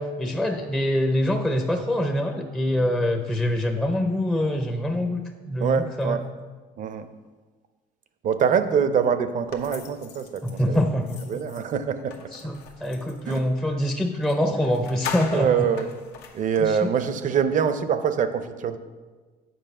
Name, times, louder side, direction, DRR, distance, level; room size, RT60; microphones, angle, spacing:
voice 1, 0.0-6.2 10.4-11.2 12.3-15.7 16.6-16.9, left 1 dB, 5° left, 4 dB, 0.5 m, -25 dB
voice 2, 5.6-6.3 6.8-7.1 8.2-10.8 11.3-12.2 13.3-13.4 15.3-15.9 16.3-18.8, right 7 dB, 50° right, 11 dB, 0.6 m, -24 dB
sound 1, 9.5-13.5 14.2-14.4 14.6-16.7, left 7 dB, 90° left, 0.9 m, -40 dB
7.9 x 4.7 x 5.3 m, 1.4 s
cardioid pair, 110°, 17 cm